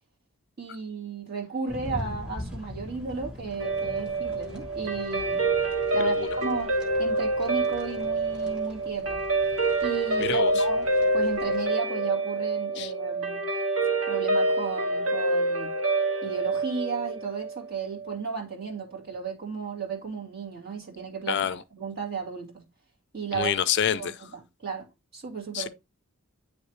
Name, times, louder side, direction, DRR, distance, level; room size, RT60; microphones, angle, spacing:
voice 1, 0.6-5.4 5.9-6.7 7.0-9.2 9.8-13.4 14.1-15.7 16.2-21.5 21.7-22.6 23.1-23.5 23.8-24.3 24.6-24.9 25.1-25.7, right 5 dB, 45° right, 2.3 m, -34 dB
sound 1, 1.7-11.7, left 1 dB, 5° right, 1.2 m, -42 dB
Guitar, 3.6-18.2, right 2 dB, 70° right, 1.9 m, -27 dB
voice 2, 10.2-10.6 12.8-12.9 21.3-21.6 23.3-24.1 25.5-25.7, left 9 dB, 50° left, 0.4 m, -27 dB
9.6 x 3.3 x 3.0 m
head